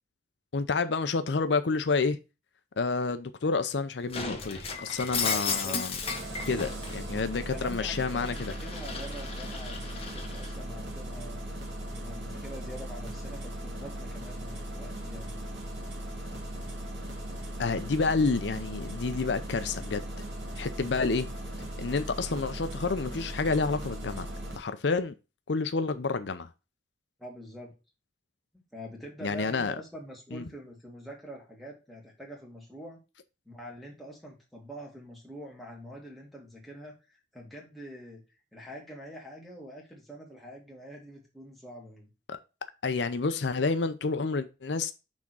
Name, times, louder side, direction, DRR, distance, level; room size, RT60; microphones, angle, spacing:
voice 1, 0.5-2.2 2.8-5.9 6.5-8.5 17.6-20.0 20.6-21.3 21.8-24.3 24.6-25.1 25.5-26.5 29.2-29.7 30.3-30.4 42.3-42.4 42.8-44.9, left 4 dB, 75° left, 0.6 m, -29 dB
Shatter, 4.1-7.0 7.4-10.5, left 5 dB, 30° left, 1.2 m, -35 dB
voice 2, 5.2-5.8 6.3-6.8 7.4-11.4 11.9-15.5 27.2-27.8 28.5-33.0 33.5-38.2 38.5-42.1, equal, ahead, 2.1 m, -45 dB
Engine starting, 6.0-24.6, right 1 dB, 90° right, 2.8 m, -38 dB
6.2 x 3.6 x 6.0 m
head